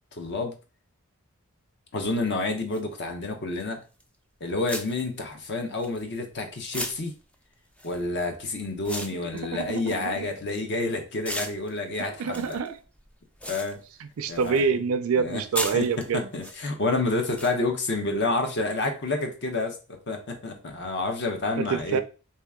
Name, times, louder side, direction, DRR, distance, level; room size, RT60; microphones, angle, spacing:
voice 1, 0.1-0.5 1.9-3.8 4.4-7.1 7.8-12.6 13.5-13.8 14.3-14.6 15.2-15.4 15.7-22.0, left 2 dB, 50° left, 0.8 m, -29 dB
sound 1, 2.7-2.8 4.0-4.2 4.7-6.3 6.7-10.8 11.2-14.7 15.0-16.6 17.4-17.5, equal, 5° left, 0.3 m, -37 dB
voice 2, 9.3-10.3 12.2-12.8 14.2-16.3 21.6-22.0, right 5 dB, 65° right, 0.4 m, -26 dB
3.2 x 2.8 x 3.6 m
head